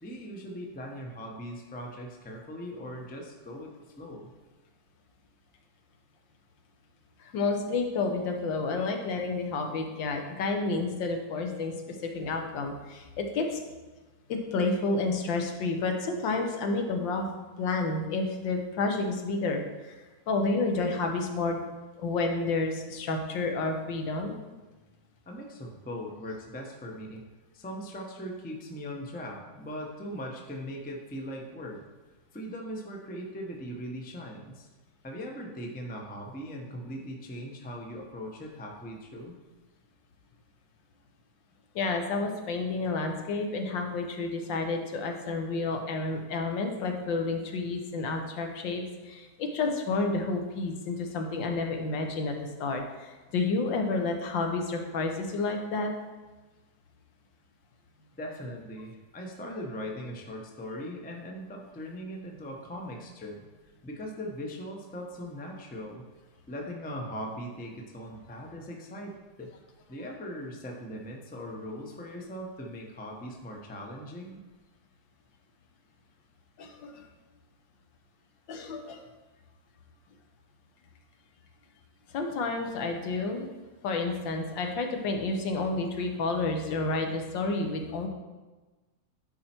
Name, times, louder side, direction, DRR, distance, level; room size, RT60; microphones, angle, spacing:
voice 1, 0.0-4.3 25.3-27.2 27.5-31.8 32.3-34.7 35.0-39.4 58.2-63.5 63.8-66.1 66.5-69.5 69.9-74.4, equal, 10° left, 0 dB, 0.4 m, -40 dB
voice 2, 7.2-11.7 12.0-13.6 14.3-17.3 17.6-21.6 22.0-24.4 41.7-52.3 52.6-55.9 76.6-77.0 78.5-79.0 82.1-83.5 83.8-88.1, left 3 dB, 80° left, 3 dB, 1.7 m, -30 dB
10.0 x 4.4 x 4.4 m, 1.2 s
omnidirectional pair, 2.0 m